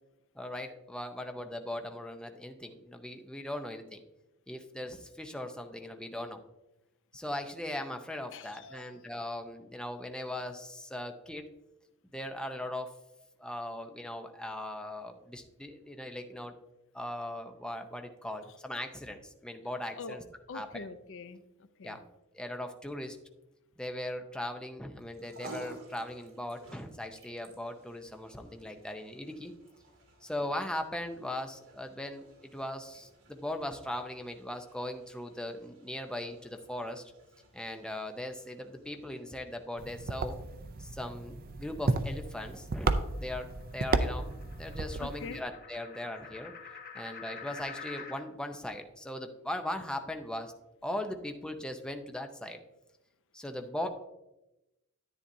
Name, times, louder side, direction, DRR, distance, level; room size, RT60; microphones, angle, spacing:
voice 1, 0.3-4.0 4.5-6.4 7.1-11.4 12.1-12.9 13.4-16.5 16.9-20.2 20.5-20.8 21.8-22.0 22.3-23.2 23.8-29.5 30.2-37.0 37.5-40.4 40.8-44.3 44.6-46.5 46.9-50.5 50.8-52.6 53.3-53.9, left 1 dB, 5° left, 5 dB, 0.7 m, -39 dB
voice 2, 8.3-9.0 20.0-20.2 20.5-22.0 45.0-45.4, left 4 dB, 65° left, 11 dB, 0.6 m, -44 dB
sound 1, 25.0-41.5, right 2 dB, 70° right, 2.2 m, -55 dB
sound 2, 39.8-45.4, right 3 dB, 45° right, 0.5 m, -33 dB
sound 3, 41.5-48.2, left 6 dB, 45° left, 1.0 m, -49 dB
10.0 x 9.6 x 2.7 m, 0.95 s
head